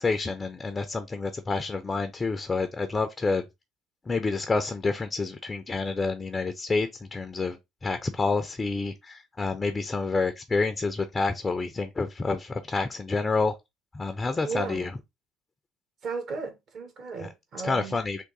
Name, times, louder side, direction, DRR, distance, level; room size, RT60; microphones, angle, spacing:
voice 1, 0.0-3.4 4.1-13.5 13.9-14.9 17.2-17.3 17.6-18.2, left 3 dB, 25° left, 0.5 m, -28 dB
voice 2, 14.4-14.9 16.0-18.0, right 4 dB, 50° right, 1.3 m, -35 dB
3.6 x 2.6 x 3.7 m
hypercardioid pair, 55°, 0 cm